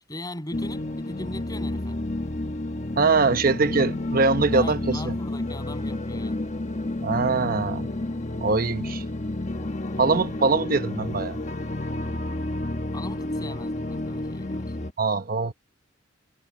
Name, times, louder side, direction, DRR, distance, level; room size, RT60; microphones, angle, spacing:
voice 1, 0.1-2.0 4.5-6.5 9.9-10.2 12.9-14.8, left 1 dB, 20° left, 7.2 m, -40 dB
sound 1, 0.5-14.9, left 1 dB, 35° left, 1.2 m, -30 dB
voice 2, 3.0-5.1 7.0-7.9 8.4-9.0 10.0-11.4 15.0-15.5, right 4 dB, 45° right, 1.0 m, -23 dB
head